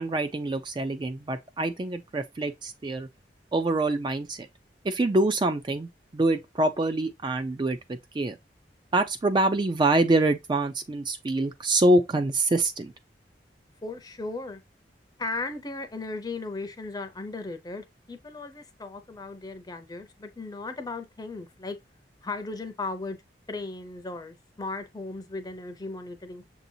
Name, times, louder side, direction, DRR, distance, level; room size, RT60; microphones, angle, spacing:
voice 1, 0.0-3.1 3.5-4.5 4.8-8.4 8.9-12.9, right 2 dB, 25° right, 0.3 m, -25 dB
voice 2, 13.8-14.6 15.2-21.8 22.2-23.2 23.5-26.4, left 3 dB, 20° left, 0.6 m, -36 dB
6.7 x 2.8 x 2.6 m
head